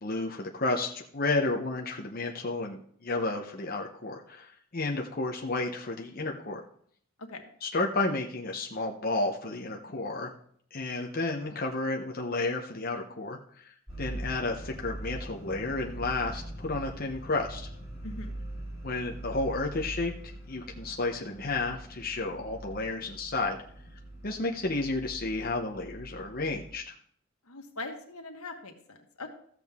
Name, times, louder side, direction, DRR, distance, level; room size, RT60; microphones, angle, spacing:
voice 1, 0.0-6.6 7.6-10.3 10.7-13.7 14.0-17.7 18.8-20.1 20.5-23.6 24.2-26.9, left 2 dB, 40° left, 0 dB, 0.8 m, -32 dB
sound 1, 13.9-26.7, right 1 dB, 10° right, 2.8 m, -42 dB
voice 2, 27.5-29.3, left 2 dB, 85° left, 3 dB, 1.5 m, -41 dB
13.5 x 7.6 x 3.6 m, 0.62 s
head